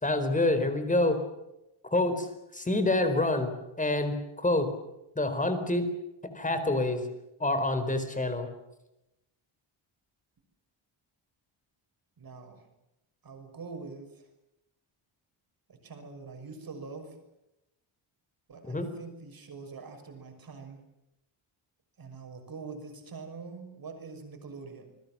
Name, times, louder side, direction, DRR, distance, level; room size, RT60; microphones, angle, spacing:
voice 1, 0.0-1.2 1.9-2.3 2.5-4.2 4.4-4.7 5.2-5.9 6.3-7.0 7.4-8.5 18.7-18.9, left 2 dB, 15° left, 9 dB, 4.3 m, -27 dB
voice 2, 12.2-12.7 13.2-14.2 15.7-17.2 18.5-20.8 22.0-24.9, right 4 dB, 45° right, 5 dB, 6.2 m, -44 dB
28.0 x 21.0 x 7.5 m, 0.89 s
wide cardioid pair, 150°, 49 cm